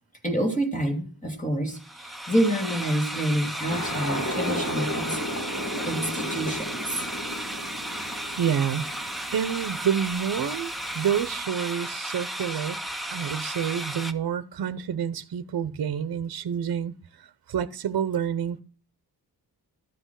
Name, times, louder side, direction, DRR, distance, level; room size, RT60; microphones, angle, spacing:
voice 1, 0.2-5.2 5.8-7.0, right 1 dB, 20° left, 2.7 m, -27 dB
sound 1, 1.7-14.1, right 1 dB, ahead, 0.8 m, -34 dB
sound 2, 3.7-11.3, equal, 50° left, 2.9 m, -34 dB
voice 2, 8.4-8.9 9.3-12.8 13.1-16.9 17.5-18.6, right 8 dB, 65° right, 0.8 m, -28 dB
13.0 x 8.0 x 6.3 m
wide cardioid pair, 155°, 39 cm